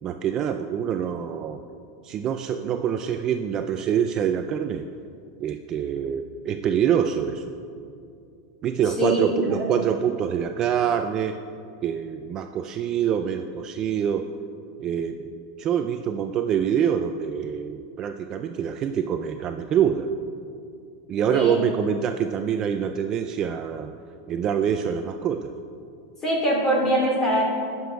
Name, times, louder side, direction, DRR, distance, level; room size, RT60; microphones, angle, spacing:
voice 1, 0.0-1.6 2.0-4.9 5.4-7.5 8.6-11.4 11.8-14.3 14.8-15.3 15.6-20.1 21.1-23.9 24.3-25.5, right 8 dB, 25° right, 7 dB, 0.4 m, -25 dB
voice 2, 9.0-9.7 21.3-21.6 26.2-27.5, equal, 20° left, -2 dB, 2.7 m, -23 dB
18.5 x 6.9 x 4.6 m, 2.4 s
supercardioid pair, 165°, 2 cm